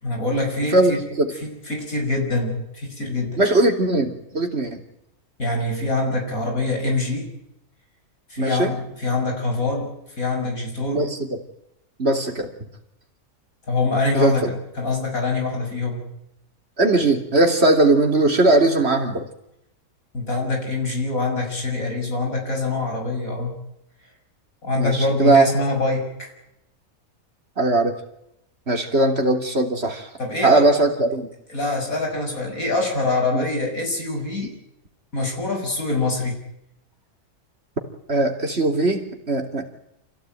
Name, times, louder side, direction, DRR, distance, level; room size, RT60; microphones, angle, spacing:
voice 1, 0.0-1.1 1.3-3.4 5.4-7.3 8.3-11.1 13.7-16.0 20.1-23.6 24.6-26.3 30.2-30.7 31.5-34.6 35.1-36.4, left 2 dB, 70° left, 2 dB, 7.4 m, -24 dB
voice 2, 0.7-1.3 3.4-4.8 8.4-8.7 10.9-11.2 12.0-12.5 14.1-14.5 16.8-19.2 24.7-25.4 27.6-27.9 28.7-30.1 30.4-31.3 33.3-33.4 38.1-39.7, right 2 dB, 45° right, 4 dB, 3.5 m, -19 dB
27.0 x 16.5 x 9.3 m, 0.82 s
omnidirectional pair, 1.5 m